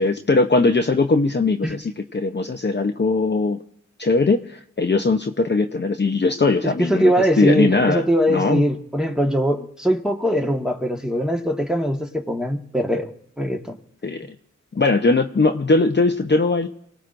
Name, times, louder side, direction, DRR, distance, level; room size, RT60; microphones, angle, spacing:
voice 1, 0.0-3.6 4.0-8.6 14.0-14.3 14.7-16.7, left 3 dB, 35° left, 4 dB, 0.8 m, -20 dB
voice 2, 6.8-13.1 13.4-13.6, equal, ahead, 2 dB, 1.5 m, -21 dB
28.5 x 18.0 x 2.6 m, 0.76 s
wide cardioid pair, 70°, 29 cm